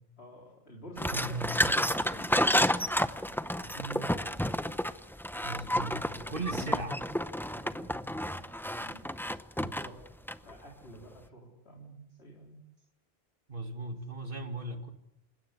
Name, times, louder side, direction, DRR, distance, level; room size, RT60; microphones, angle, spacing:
voice 1, 0.2-4.9 5.6-6.8 7.5-9.0 9.6-10.0 10.4-12.6, right 1 dB, 75° left, -1 dB, 4.1 m, -48 dB
sound 1, 1.0-10.5, equal, 5° left, 0.6 m, -30 dB
voice 2, 1.1-1.7 5.4-6.9 13.5-14.9, right 2 dB, 55° right, 5 dB, 2.5 m, -37 dB
28.0 x 16.5 x 8.2 m, 0.84 s
omnidirectional pair, 1.1 m